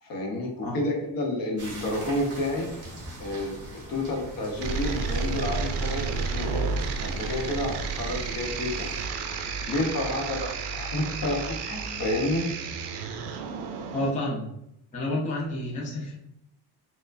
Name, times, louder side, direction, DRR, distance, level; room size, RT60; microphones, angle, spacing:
voice 1, 0.0-2.7 3.2-3.5 3.9-6.7 7.0-8.9 9.7-12.5, left 1 dB, 55° left, 0 dB, 0.8 m, -30 dB
sound 1, 1.6-9.1, right 2 dB, 35° right, 1.2 m, -42 dB
sound 2, 4.6-14.1, right 5 dB, 70° right, 0.5 m, -31 dB
voice 2, 13.9-14.5 14.9-16.1, left 1 dB, 20° left, -4 dB, 0.5 m, -29 dB
4.5 x 2.1 x 2.5 m, 0.81 s
cardioid pair, 150°, 42 cm